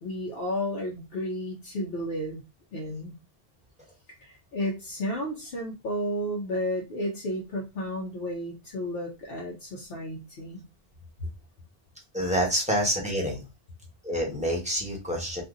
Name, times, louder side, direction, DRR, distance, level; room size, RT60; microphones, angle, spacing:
voice 1, 0.0-2.4 2.7-3.1 4.2-10.6 11.2-11.3, equal, 70° left, -2 dB, 0.9 m, -32 dB
voice 2, 12.1-13.4 14.0-15.4, equal, 5° right, -1 dB, 1.1 m, -27 dB
2.6 x 2.5 x 3.6 m, 0.26 s
omnidirectional pair, 1.0 m